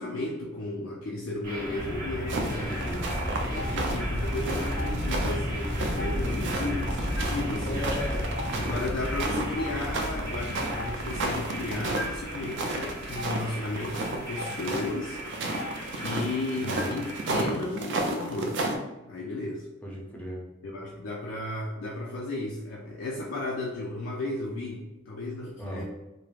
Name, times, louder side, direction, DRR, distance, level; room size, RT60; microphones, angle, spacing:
voice 1, 0.0-2.8 3.5-7.8 8.6-15.2 15.7-18.6 19.1-19.7 20.6-25.8, left 2 dB, 65° left, -2 dB, 0.3 m, -34 dB
sound 1, 1.4-17.4, equal, 45° right, 0.7 m, -33 dB
sound 2, 2.3-18.8, right 2 dB, 60° right, 0.4 m, -33 dB
voice 2, 2.6-3.1 7.7-8.2 16.6-16.9 19.8-20.4 25.6-25.8, equal, 5° left, -3 dB, 0.5 m, -36 dB
Stream, 3.6-3.7 4.8-4.9 6.0-6.1 7.2-7.3 8.4-8.5 9.6-9.7 10.8-10.9 12.0-12.1 13.2-13.3 14.4-14.5 15.6-15.7 16.8-16.9, left 2 dB, 85° right, 0.9 m, -36 dB
3.1 x 2.0 x 2.3 m, 0.98 s
head